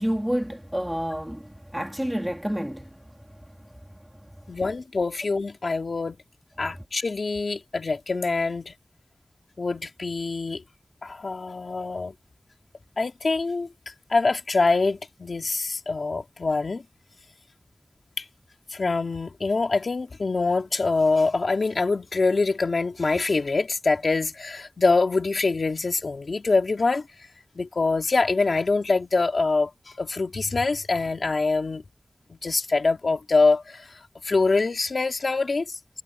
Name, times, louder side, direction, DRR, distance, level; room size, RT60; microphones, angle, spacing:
voice 1, 0.0-4.5, equal, 5° right, 2.8 m, -30 dB
voice 2, 4.5-6.2 6.6-8.7 9.6-10.6 11.0-12.1 13.0-13.7 14.1-16.8 18.2-18.3 18.7-27.1 27.5-29.7 30.0-31.8 32.3-35.8, left 3 dB, 75° left, 2.6 m, -24 dB
wide cardioid pair, 70°, 0 cm